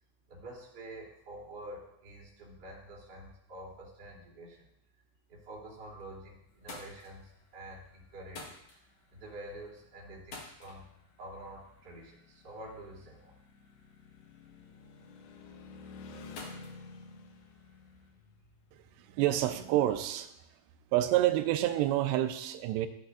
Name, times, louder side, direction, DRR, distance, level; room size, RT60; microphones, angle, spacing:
voice 1, 0.3-4.6 5.3-8.6 9.1-10.9 11.2-13.3, right 1 dB, 25° right, -7 dB, 3.2 m, -47 dB
sound 1, 5.6-6.2 6.5-18.1, left 3 dB, 60° left, 1.7 m, -54 dB
sound 2, 6.4-6.8 7.2-8.2 8.5-8.7 9.0-9.2 9.9-10.0 10.2-20.0, left 4 dB, 85° left, 3.0 m, -53 dB
voice 2, 19.0-20.3 20.9-22.9, right 14 dB, 85° right, 9 dB, 2.8 m, -28 dB
13.5 x 8.3 x 2.6 m, 0.78 s
omnidirectional pair, 5.0 m